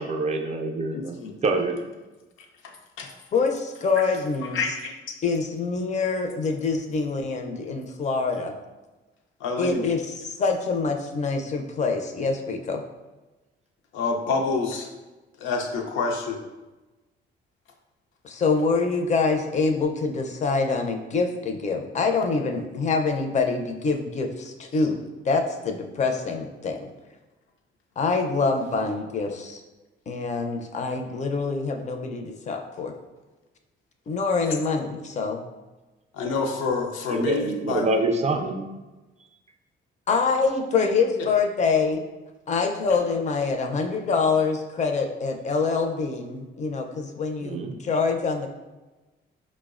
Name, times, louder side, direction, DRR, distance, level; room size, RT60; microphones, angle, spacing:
voice 1, 0.0-1.9 37.1-38.7 47.4-47.7, right 2 dB, 35° right, 3 dB, 0.4 m, -26 dB
voice 2, 0.9-1.3 2.6-3.1 4.5-4.9 9.4-9.8 13.9-14.9 15.4-16.4 34.4-34.5 36.1-37.9 41.2-41.3, left 4 dB, 90° left, 2 dB, 0.5 m, -27 dB
voice 3, 3.3-4.6 5.2-8.5 9.6-12.8 18.2-26.9 28.0-29.6 30.1-32.9 34.1-35.4 40.1-42.0 42.5-48.5, left 4 dB, 35° left, 4 dB, 0.4 m, -25 dB
4.6 x 2.0 x 2.4 m, 1.2 s
cardioid pair, 90°, 20 cm